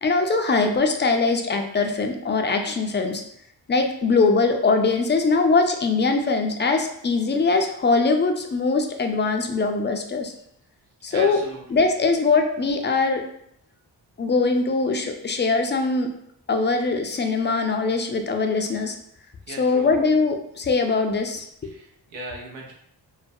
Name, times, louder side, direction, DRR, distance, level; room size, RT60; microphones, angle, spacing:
voice 1, 0.0-3.2 3.7-10.3 11.0-11.4 11.7-13.2 14.2-16.1 16.5-19.0 19.5-21.7, left 3 dB, 25° left, 5 dB, 0.3 m, -22 dB
voice 2, 11.1-11.6 19.5-19.9 21.6-22.7, right 2 dB, 85° right, -1 dB, 0.7 m, -37 dB
2.3 x 2.1 x 2.6 m, 0.71 s
cardioid pair, 50°, 45 cm